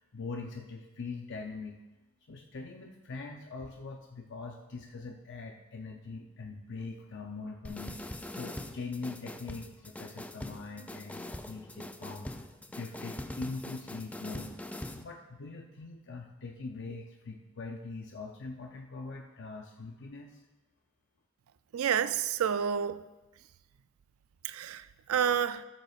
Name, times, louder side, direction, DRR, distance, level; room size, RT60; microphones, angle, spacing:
voice 1, 0.0-1.8 2.3-7.9 8.3-14.5 14.9-20.4, left 3 dB, 55° left, 2 dB, 0.6 m, -42 dB
sound 1, 7.6-15.0, left 1 dB, 5° left, 0.4 m, -42 dB
voice 2, 21.7-23.0 24.4-25.6, right 8 dB, 70° right, 14 dB, 0.4 m, -29 dB
13.5 x 7.7 x 2.4 m, 1.1 s
head